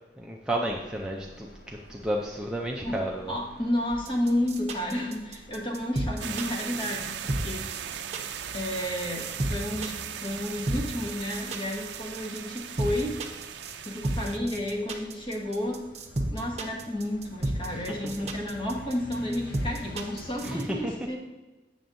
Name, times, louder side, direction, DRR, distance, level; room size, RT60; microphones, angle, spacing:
voice 1, 0.2-3.3 17.7-17.8 18.2-18.3 20.4-21.0, right 1 dB, 5° right, -2 dB, 0.4 m, -32 dB
sound 1, 0.7-20.5, left 1 dB, 60° left, 0.6 m, -49 dB
voice 2, 3.3-7.9 8.5-13.1 13.8-15.8 16.3-21.2, left 1 dB, 30° left, -1 dB, 1.2 m, -31 dB
sound 2, 3.9-20.6, right 1 dB, 40° right, 0.8 m, -32 dB
sound 3, 6.2-14.4, right 10 dB, 75° right, 0.4 m, -38 dB
8.9 x 6.8 x 2.6 m, 1.1 s
head